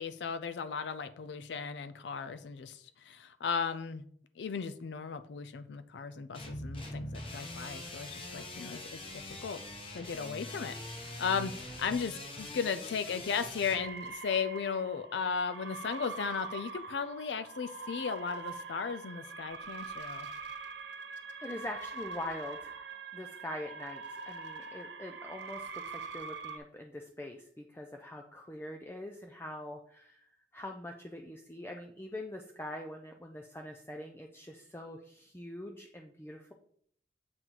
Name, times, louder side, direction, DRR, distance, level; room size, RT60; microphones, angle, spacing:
voice 1, 0.0-4.0 4.4-9.6 9.9-20.3, left 6 dB, 80° left, 11 dB, 0.4 m, -36 dB
sound 1, 6.3-13.8, left 1 dB, 30° left, 1.0 m, -43 dB
sound 2, 13.7-26.6, right 4 dB, 90° right, 1.0 m, -43 dB
voice 2, 21.4-22.7 23.1-36.5, left 1 dB, 15° left, 2 dB, 0.4 m, -44 dB
7.7 x 4.0 x 4.5 m, 0.63 s
head